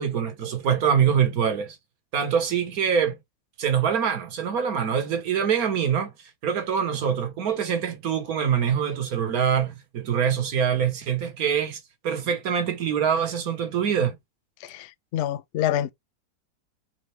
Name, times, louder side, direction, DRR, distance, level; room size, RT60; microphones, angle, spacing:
voice 1, 0.0-1.8 2.1-3.2 3.6-6.1 6.4-14.2, right 7 dB, 65° right, 1.6 m, -24 dB
voice 2, 14.6-15.9, left 11 dB, 85° left, 0.5 m, -27 dB
4.4 x 3.7 x 3.1 m
omnidirectional pair, 1.7 m